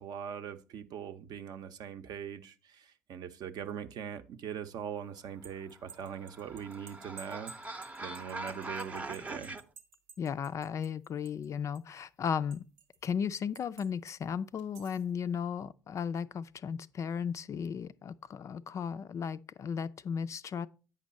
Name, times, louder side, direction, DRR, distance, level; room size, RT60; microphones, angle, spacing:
voice 1, 0.0-9.5, right 8 dB, 50° right, 0.6 m, -42 dB
sound 1, 5.2-11.5 11.8-13.0 13.6-14.2 14.6-15.1, right 6 dB, 80° right, 0.9 m, -54 dB
sound 2, 5.7-9.6, right 2 dB, 15° right, 0.6 m, -42 dB
voice 2, 10.2-12.6 13.0-20.7, left 7 dB, 40° left, 0.4 m, -35 dB
8.5 x 5.2 x 4.1 m
hypercardioid pair, 65°, 8 cm